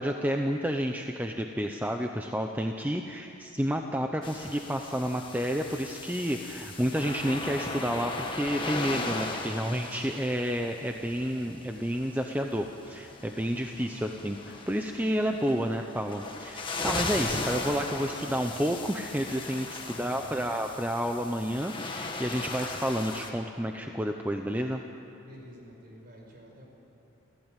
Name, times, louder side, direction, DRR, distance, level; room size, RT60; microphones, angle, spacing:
voice 1, 0.0-14.4 14.7-24.8, equal, 10° right, 4 dB, 0.8 m, -30 dB
sound 1, 4.2-23.3, left 3 dB, 25° left, 1.8 m, -37 dB
voice 2, 13.7-14.2 19.7-20.5 25.1-26.7, equal, 45° right, 0 dB, 5.4 m, -50 dB
29.0 x 15.5 x 9.1 m, 2.9 s
head